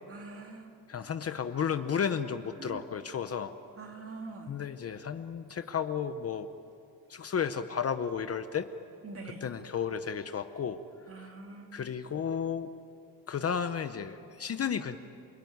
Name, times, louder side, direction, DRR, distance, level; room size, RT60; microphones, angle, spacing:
voice 1, 0.1-0.7 2.6-2.8 3.8-4.6 9.0-9.5 11.1-11.7, right 3 dB, 35° right, 3 dB, 2.5 m, -44 dB
voice 2, 0.9-3.5 4.5-6.5 7.1-8.7 9.4-10.8 11.2-11.3 11.7-12.7 13.3-15.0, left 7 dB, 35° left, 10 dB, 0.7 m, -33 dB
28.5 x 21.0 x 9.4 m, 2.6 s
cardioid pair, 165°, 40 cm